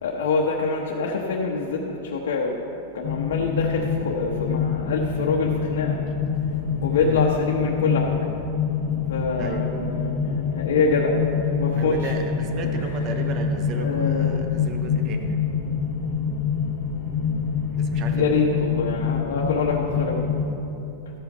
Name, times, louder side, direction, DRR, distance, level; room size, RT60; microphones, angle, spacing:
voice 1, 0.0-2.6 2.9-6.0 6.8-8.1 9.0-12.2 12.6-13.4 13.7-14.4 18.1-20.3, left 4 dB, 85° left, -2 dB, 1.1 m, -25 dB
sound 1, 3.0-20.5, left 6 dB, 55° left, 2.2 m, -26 dB
voice 2, 11.7-15.4 17.7-18.3, right 3 dB, 25° right, 5 dB, 0.7 m, -34 dB
13.5 x 5.7 x 5.5 m, 3.0 s
supercardioid pair, 175°, 0 cm